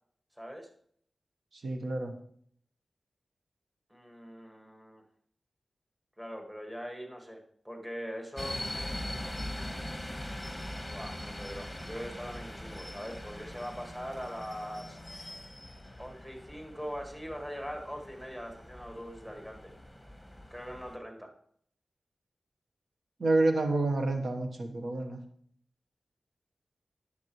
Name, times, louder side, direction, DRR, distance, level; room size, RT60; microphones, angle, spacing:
voice 1, 0.4-0.7 3.9-5.0 6.2-8.6 10.9-15.0 16.0-19.7 20.5-21.3, equal, 5° right, 2 dB, 1.8 m, -42 dB
voice 2, 1.5-2.1 23.2-25.2, right 2 dB, 75° right, 5 dB, 1.2 m, -28 dB
sound 1, 8.4-21.0, left 1 dB, 10° left, 1.3 m, -42 dB
10.5 x 7.0 x 3.1 m, 0.63 s
cardioid pair, 50°, 0 cm